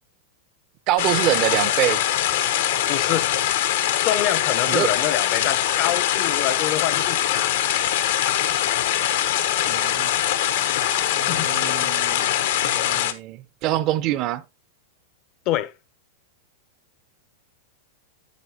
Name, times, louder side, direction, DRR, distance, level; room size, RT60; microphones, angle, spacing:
voice 1, 0.9-2.0 4.7-4.9 9.7-10.1 11.2-12.3 12.6-14.4, right 14 dB, 40° right, 0.6 m, -25 dB
sound 1, 1.0-13.1, left 11 dB, 70° left, 0.9 m, -22 dB
voice 2, 2.9-3.3 4.0-7.6 11.2-11.5 15.5-15.7, left 13 dB, 40° left, 0.6 m, -26 dB
9.3 x 7.7 x 2.8 m
supercardioid pair, 140°, 0 cm